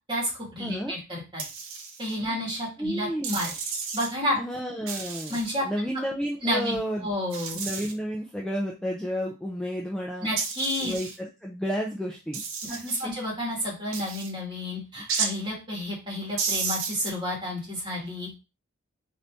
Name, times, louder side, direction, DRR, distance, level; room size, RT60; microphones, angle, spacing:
voice 1, 0.1-1.4 2.0-3.5 3.9-4.4 5.3-5.7 6.4-7.6 10.2-11.0 13.0-18.3, left 1 dB, 20° right, -3 dB, 1.7 m, -30 dB
voice 2, 0.6-0.9 2.2-2.4 2.8-3.4 4.4-7.1 7.5-10.3 10.8-12.4 12.7-13.1, equal, 5° left, -1 dB, 0.4 m, -31 dB
sound 1, 1.4-2.2 3.2-4.1 4.9-5.6 7.3-7.9 10.4-11.2 12.3-13.0 13.9-14.3 15.1-15.3 16.4-17.1, right 5 dB, 60° right, 0.8 m, -32 dB
3.9 x 2.7 x 3.4 m, 0.29 s
head